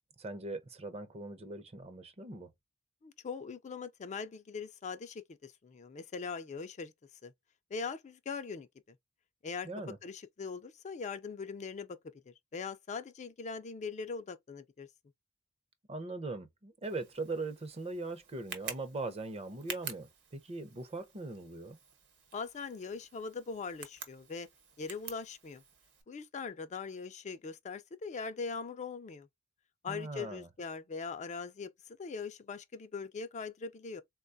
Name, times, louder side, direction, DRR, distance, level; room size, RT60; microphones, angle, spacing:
voice 1, 0.2-2.5 9.6-10.0 15.9-21.8 29.9-30.5, right 2 dB, 30° right, 0.6 m, -40 dB
voice 2, 3.0-6.9 7.2-7.3 7.7-8.7 9.4-9.7 10.0-12.0 12.5-14.9 22.3-24.5 24.8-25.6 26.1-29.3 29.8-34.0, left 5 dB, 35° left, 0.4 m, -41 dB
Tick, 16.8-26.0, right 7 dB, 55° right, 1.0 m, -49 dB
3.9 x 2.2 x 2.5 m
head